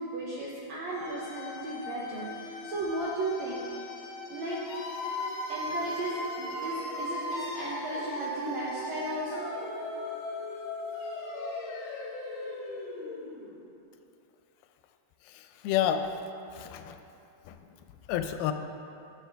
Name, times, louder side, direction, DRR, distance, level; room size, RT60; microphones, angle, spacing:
voice 1, 0.0-3.8 4.3-4.6 5.5-9.5, right 2 dB, 75° right, -5 dB, 1.6 m, -35 dB
sound 1, 0.9-13.7, left 2 dB, 70° left, 2.7 m, -37 dB
voice 2, 15.3-16.1 16.5-17.0 17.5-17.6 18.1-18.5, left 10 dB, 90° left, 8 dB, 2.5 m, -30 dB
13.0 x 7.3 x 3.4 m, 2.8 s
omnidirectional pair, 4.3 m